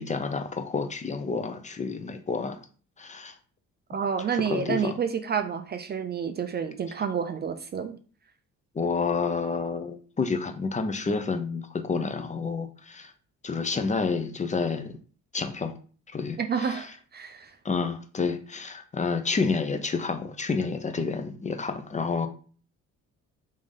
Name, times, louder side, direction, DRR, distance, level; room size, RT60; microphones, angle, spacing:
voice 1, 0.0-2.6 3.0-3.3 4.3-4.9 8.7-13.1 13.4-14.9 15.3-15.7 16.1-16.9 17.6-22.3, left 4 dB, 25° left, 0.5 m, -29 dB
voice 2, 3.9-8.0 16.4-17.6, right 7 dB, 35° right, 0.4 m, -29 dB
3.2 x 2.6 x 3.6 m
cardioid pair, 90°, 30 cm